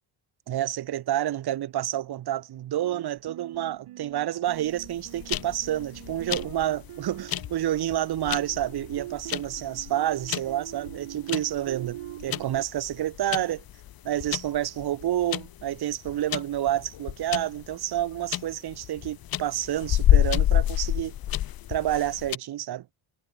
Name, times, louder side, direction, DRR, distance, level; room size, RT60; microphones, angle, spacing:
voice 1, 0.5-13.6 14.0-21.1 21.7-22.8, right 12 dB, 50° right, 0.9 m, -29 dB
sound 1, 2.8-12.7, right 15 dB, 90° right, 2.2 m, -43 dB
sound 2, 4.8-22.4, left 12 dB, 45° left, 0.8 m, -29 dB
cardioid pair, 155°, 50 cm